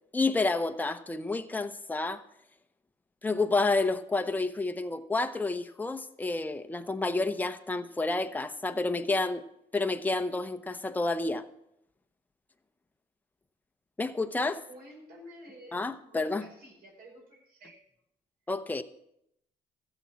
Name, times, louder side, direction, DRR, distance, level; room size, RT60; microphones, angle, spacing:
voice 1, 0.1-2.2 3.2-9.4 9.7-11.5 14.0-14.6 15.7-16.4 18.5-18.8, left 3 dB, 10° left, 0.7 m, -29 dB
voice 2, 8.8-9.1 14.7-17.8, equal, 60° right, 4.9 m, -51 dB
14.5 x 7.0 x 6.2 m
cardioid pair, 110°, 17 cm